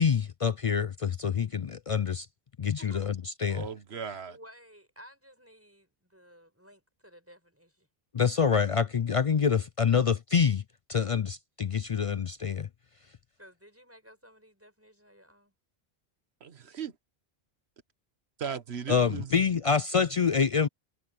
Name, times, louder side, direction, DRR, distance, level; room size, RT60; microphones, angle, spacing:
voice 1, 0.0-2.3 2.6-3.1 3.4-3.6 8.1-10.6 10.9-12.7 18.9-20.7, left 6 dB, 50° left, 0.4 m, -26 dB
voice 2, 2.8-3.1 4.3-7.9 13.4-15.5, equal, 15° right, 7.0 m, -55 dB
voice 3, 3.5-4.4 16.4-16.9 18.4-19.4, right 7 dB, 90° right, 1.4 m, -37 dB
omnidirectional pair, 1.0 m